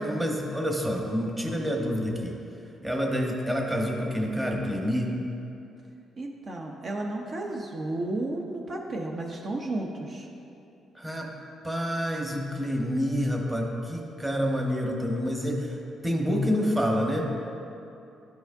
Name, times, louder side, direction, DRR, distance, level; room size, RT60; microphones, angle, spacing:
voice 1, 0.0-2.3 2.8-5.1 10.9-11.3 11.6-15.8 16.0-17.4, equal, 10° right, 0 dB, 1.0 m, -28 dB
voice 2, 6.2-10.3, right 2 dB, 45° right, -1 dB, 0.6 m, -33 dB
12.0 x 4.8 x 2.6 m, 2.8 s
cardioid pair, 90°, 0 cm